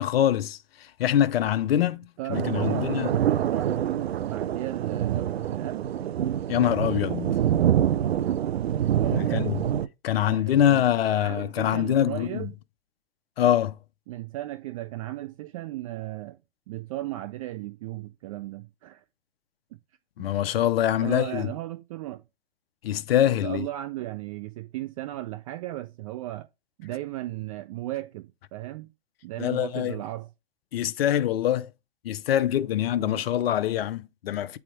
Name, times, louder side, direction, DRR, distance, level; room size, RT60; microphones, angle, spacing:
voice 1, 0.0-3.1 6.5-7.4 9.1-9.6 10.0-12.4 13.4-13.8 20.2-21.5 22.8-23.7 29.4-30.0 30.7-31.7 32.0-34.6, left 11 dB, 70° left, 0.7 m, -24 dB
voice 2, 2.2-2.9 3.3-5.9 9.0-9.5 10.2-12.6 14.1-16.4 16.7-19.0 19.7-19.8 20.2-20.3 21.0-22.2 23.3-26.5 26.8-28.9 29.2-30.3 33.0-33.2, right 16 dB, 35° right, 0.4 m, -36 dB
sound 1, 2.3-9.9, right 10 dB, 80° right, 0.6 m, -26 dB
8.5 x 3.5 x 4.6 m
hypercardioid pair, 125°, 31 cm